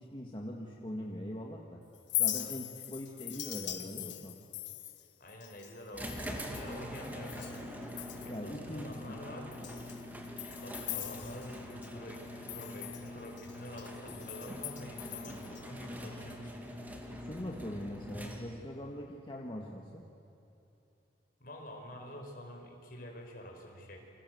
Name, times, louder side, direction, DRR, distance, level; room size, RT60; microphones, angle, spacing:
voice 1, 0.0-1.8 2.2-4.3 8.3-9.2 17.1-20.0, equal, 25° left, -1 dB, 1.9 m, -42 dB
Chink clink, 1.9-7.6 7.9-8.5 8.9-9.0 9.5-11.9 12.1-15.6, left 14 dB, 80° left, 1.6 m, -40 dB
voice 2, 5.2-7.5 8.2-9.5 10.6-16.5 21.4-24.0, equal, 50° left, 2 dB, 5.2 m, -47 dB
sound 1, 5.9-18.7, left 1 dB, 10° right, 2.6 m, -44 dB
29.0 x 26.0 x 7.9 m, 2.9 s
head